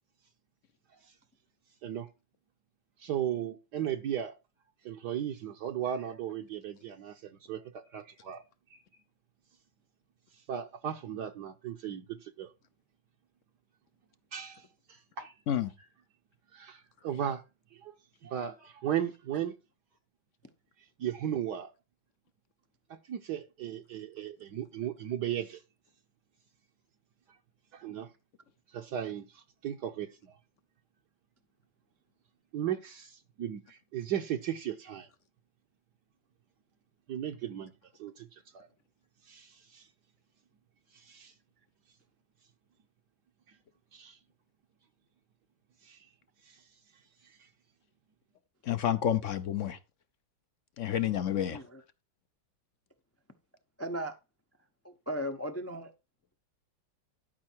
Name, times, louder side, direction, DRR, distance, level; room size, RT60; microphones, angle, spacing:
voice 1, 3.0-4.4 4.8-8.4 8.7-8.8 10.5-12.5 14.3-15.3 16.5-17.4 17.7-17.9 18.2-19.5 21.0-21.7 22.9-25.6 27.7-28.1 28.7-30.4 32.5-35.1 37.1-37.7 38.0-38.7 39.3-39.9 40.9-41.3 43.9-44.2 45.8-46.1 46.4-46.6 47.2-47.5, right 10 dB, 70° right, 1.4 m, -36 dB
voice 2, 48.6-49.8 50.8-51.6, left 10 dB, 65° left, 0.8 m, -29 dB
voice 3, 51.5-51.8 53.8-54.2 54.8-55.9, equal, 25° left, 0.3 m, -36 dB
12.0 x 5.5 x 4.5 m
omnidirectional pair, 2.0 m